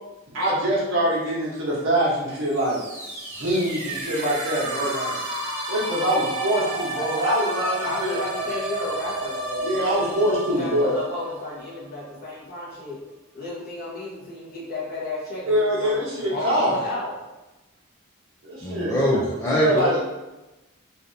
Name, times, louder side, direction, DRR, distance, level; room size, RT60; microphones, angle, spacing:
voice 1, 0.3-2.8 3.3-5.2 5.7-8.1 9.6-10.9 15.5-16.7 18.4-19.2 19.5-19.9, equal, 70° right, -6 dB, 1.1 m, -24 dB
sound 1, 2.4-12.2, right 1 dB, 35° right, 0.8 m, -32 dB
voice 2, 7.8-13.0 13.3-17.1, left 2 dB, 50° left, -8 dB, 1.2 m, -33 dB
voice 3, 18.6-20.0, equal, 15° left, -7 dB, 0.4 m, -24 dB
3.3 x 2.6 x 2.7 m, 1.0 s
head